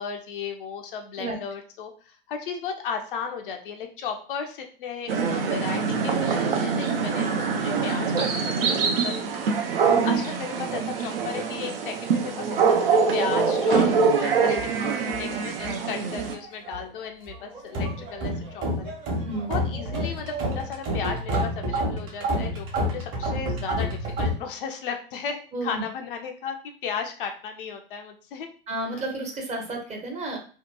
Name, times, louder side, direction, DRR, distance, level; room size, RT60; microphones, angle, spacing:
voice 1, 0.0-18.9 19.5-28.5, left 6 dB, 60° left, 4 dB, 0.5 m, -35 dB
sound 1, 5.1-16.3, right 5 dB, 70° right, 0.5 m, -24 dB
voice 2, 9.9-10.2 15.0-15.4 19.2-19.6 25.5-25.8 28.7-30.4, right 2 dB, 20° right, 1 dB, 0.7 m, -32 dB
sound 2, 14.5-15.8 16.1-16.9 17.3-24.4, equal, 40° right, 1.0 m, -29 dB
2.7 x 2.2 x 2.3 m, 0.41 s
figure-of-eight pair, 85°, 30 cm